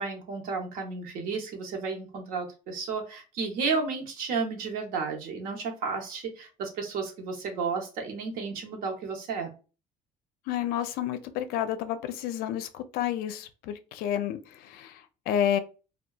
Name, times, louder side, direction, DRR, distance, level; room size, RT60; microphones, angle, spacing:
voice 1, 0.0-9.5, right 4 dB, 70° right, 0.8 m, -32 dB
voice 2, 10.5-15.0 15.3-15.6, left 10 dB, 85° left, 0.4 m, -30 dB
2.7 x 2.2 x 2.2 m
cardioid pair, 145°, 15 cm